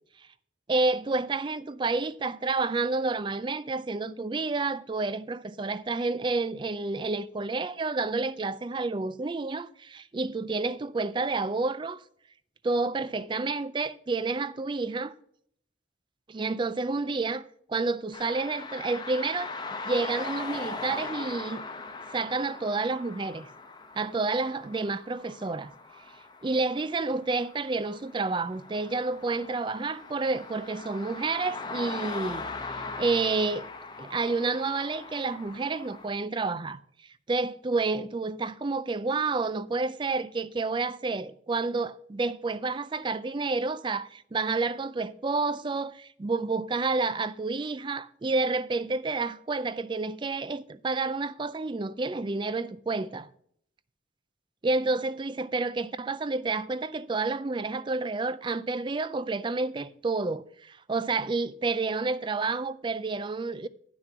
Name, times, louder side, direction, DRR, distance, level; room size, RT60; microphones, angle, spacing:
voice 1, 0.7-12.0 12.6-15.1 16.3-19.5 19.9-21.6 22.1-23.5 24.0-25.7 26.4-33.7 34.0-36.8 37.3-53.3 54.6-63.7, right 3 dB, 25° right, 0.3 m, -29 dB
sound 1, 18.1-36.1, left 3 dB, 20° left, 0.8 m, -40 dB
10.5 x 6.2 x 5.7 m
head